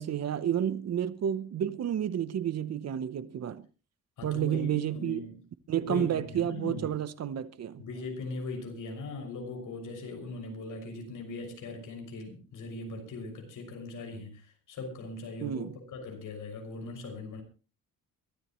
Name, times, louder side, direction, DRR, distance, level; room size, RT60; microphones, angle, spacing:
voice 1, 0.0-3.7 4.2-5.2 5.7-7.8 15.4-15.7, right 10 dB, 45° right, 0.9 m, -30 dB
voice 2, 4.2-5.4 5.9-7.0 7.8-17.4, left 3 dB, 60° left, 6.2 m, -40 dB
23.0 x 13.5 x 3.1 m
cardioid pair, 160°, 35 cm